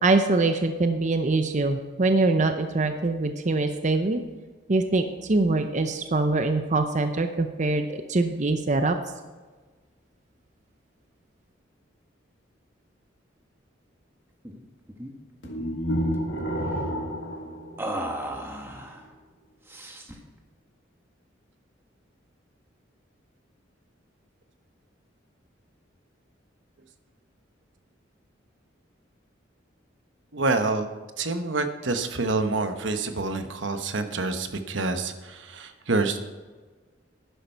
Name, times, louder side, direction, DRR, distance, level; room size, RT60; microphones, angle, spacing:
voice 1, 0.0-4.2 4.7-9.0, right 3 dB, 40° right, 7 dB, 0.6 m, -23 dB
sound 1, 14.4-14.6 14.9-15.1 15.4-16.2 17.8-19.0 19.7-20.3, right 1 dB, 15° right, 1.2 m, -35 dB
sound 2, 15.4-18.6, equal, 65° left, 1.8 m, -30 dB
voice 2, 30.3-30.9 31.2-36.2, right 3 dB, 75° right, 8 dB, 1.0 m, -27 dB
11.5 x 11.0 x 4.5 m, 1.3 s
head